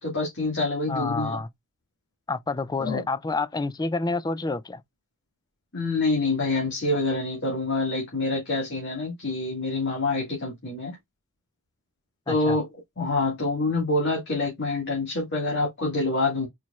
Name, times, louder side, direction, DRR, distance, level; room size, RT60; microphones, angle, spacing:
voice 1, 0.0-1.4 2.8-3.0 5.7-10.9 12.3-12.7 13.0-16.5, left 2 dB, 55° left, 1.8 m, -26 dB
voice 2, 0.9-1.5 2.3-4.8 12.3-12.6, left 3 dB, 20° left, 0.4 m, -28 dB
4.5 x 4.3 x 2.3 m
head